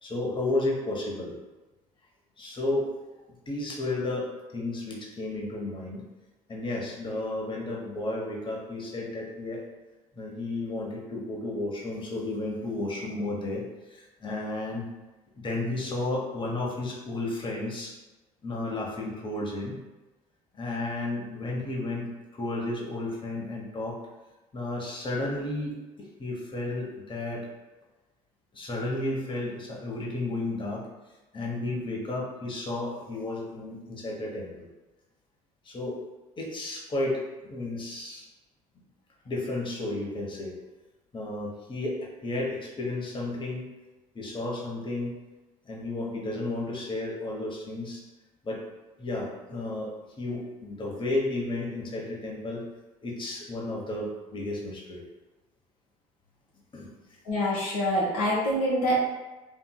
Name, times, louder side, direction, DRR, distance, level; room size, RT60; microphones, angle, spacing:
voice 1, 0.0-1.3 2.4-2.9 3.5-6.0 6.5-9.6 10.1-13.6 13.9-14.9 15.3-17.9 18.4-19.8 20.5-24.0 24.5-27.5 28.5-30.9 31.3-34.7 35.6-36.0 36.4-38.3 39.2-40.5 41.1-43.7 44.1-45.1 45.6-48.0 48.4-48.6 49.0-52.6 53.0-55.0 56.7-56.9, left 2 dB, 25° left, -2 dB, 0.8 m, -32 dB
voice 2, 57.2-58.9, equal, 85° left, -5 dB, 0.8 m, -25 dB
2.8 x 2.7 x 2.2 m, 1.1 s
hypercardioid pair, 60°, 18 cm